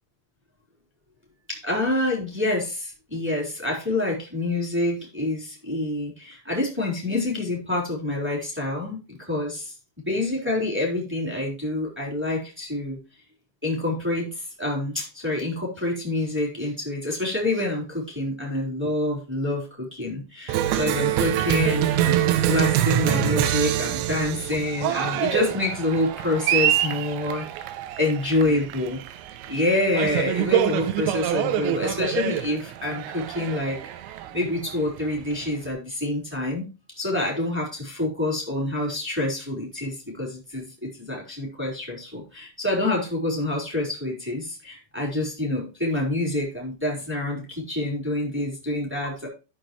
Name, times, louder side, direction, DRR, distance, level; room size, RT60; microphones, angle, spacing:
voice 1, 1.5-9.7 10.0-13.0 13.6-22.2 22.5-27.4 28.0-29.0 29.5-33.8 34.3-36.7 37.0-49.3, left 2 dB, 5° right, -2 dB, 3.0 m, -27 dB
Cheering, 20.5-35.7, right 12 dB, 80° right, 2.8 m, -25 dB
13.5 x 6.3 x 3.1 m, 0.30 s
omnidirectional pair, 5.8 m